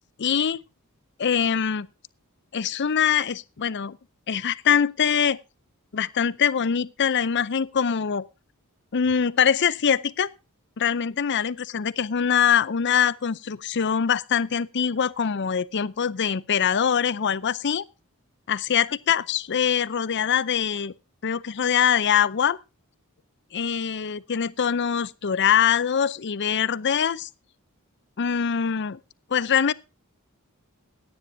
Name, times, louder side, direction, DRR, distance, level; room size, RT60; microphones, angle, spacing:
voice 1, 0.2-0.6 1.2-1.9 2.5-4.0 4.3-5.4 5.9-8.3 8.9-10.3 10.8-17.8 18.5-20.9 21.2-22.6 23.5-27.3 28.2-29.0 29.3-29.7, left 7 dB, 55° left, 0.6 m, -23 dB
16.5 x 10.0 x 2.7 m
head